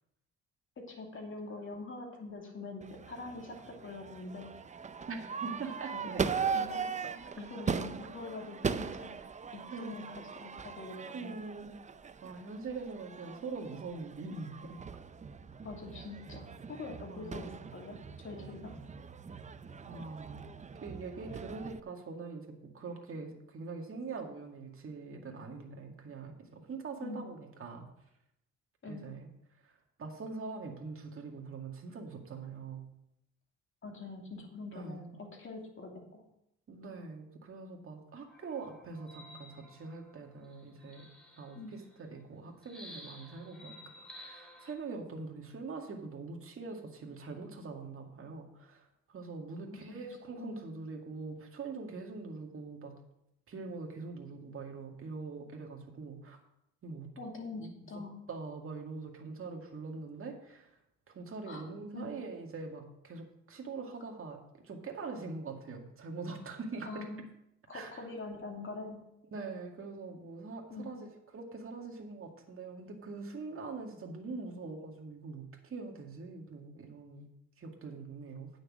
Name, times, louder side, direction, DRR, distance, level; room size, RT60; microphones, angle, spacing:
voice 1, 0.8-4.5 5.9-6.0 6.5-9.2 9.5-11.4 15.6-18.0 18.2-18.7 27.0-27.2 28.8-29.1 33.8-36.2 41.6-41.7 49.9-50.1 50.4-50.6 57.2-58.2 61.5-61.6 61.9-62.1 66.9-67.2 67.7-69.0 70.7-70.9, left 3 dB, 40° left, 1 dB, 2.6 m, -44 dB
Crowd / Fireworks, 2.8-21.8, right 6 dB, 25° right, 0.5 m, -40 dB
voice 2, 5.1-6.3 8.8-8.9 9.7-10.0 11.1-11.8 12.2-14.8 17.1-17.5 18.3-18.5 19.9-20.5 20.8-27.9 28.9-29.3 29.6-32.8 34.7-35.1 36.7-41.1 41.4-52.9 53.5-56.4 56.8-57.1 57.6-57.9 58.3-60.7 61.1-67.1 67.7-68.1 69.3-71.1 71.3-77.3 77.6-78.5, right 4 dB, 45° right, 2 dB, 2.1 m, -43 dB
sound 1, 38.3-42.0 42.6-44.7, left 1 dB, ahead, 2.8 m, -53 dB
9.1 x 6.5 x 6.3 m, 0.80 s
cardioid pair, 90°, 30 cm